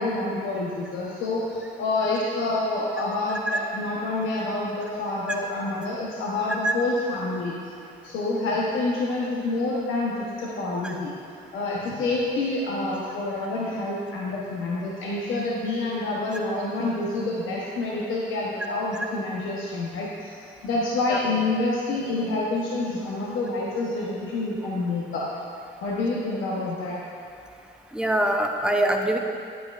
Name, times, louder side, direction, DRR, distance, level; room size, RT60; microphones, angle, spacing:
voice 1, 0.0-7.6 8.0-11.1 11.5-20.3 20.6-25.2 25.8-27.0, left 2 dB, 80° left, -5 dB, 1.0 m, -27 dB
voice 2, 27.9-29.2, right 1 dB, 5° right, 2 dB, 0.7 m, -23 dB
9.6 x 8.4 x 2.5 m, 2.4 s
cardioid pair, 90°, 20 cm